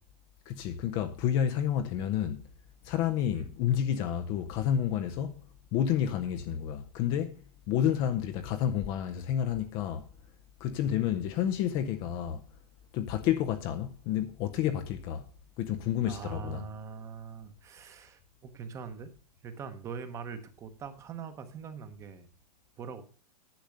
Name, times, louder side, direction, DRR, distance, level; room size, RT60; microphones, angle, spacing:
voice 1, 0.5-2.4 2.8-5.4 5.7-10.1 10.6-12.4 12.9-15.3 15.6-16.7, left 10 dB, 25° left, 0.6 m, -30 dB
voice 2, 16.0-19.1 19.4-22.3 22.8-23.0, right 6 dB, 15° right, 1.0 m, -43 dB
10.5 x 7.0 x 6.5 m
supercardioid pair, 170°, 20 cm